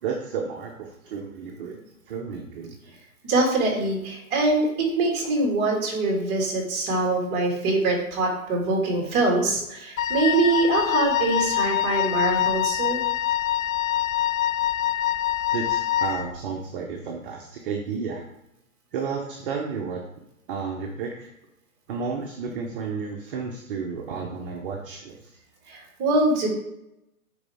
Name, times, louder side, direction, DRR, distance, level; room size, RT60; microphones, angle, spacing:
voice 1, 0.0-2.7 15.5-18.2 18.9-20.0 20.5-21.3 21.9-25.4, right 5 dB, 40° right, 1 dB, 1.0 m, -32 dB
voice 2, 3.2-13.0 25.7-26.5, right 2 dB, 25° right, -1 dB, 2.2 m, -23 dB
Wind instrument woodwind instrument, 10.0-16.3, left 12 dB, 70° left, 0.6 m, -25 dB
9.6 x 4.2 x 3.5 m, 0.87 s
hypercardioid pair, 145°, 42 cm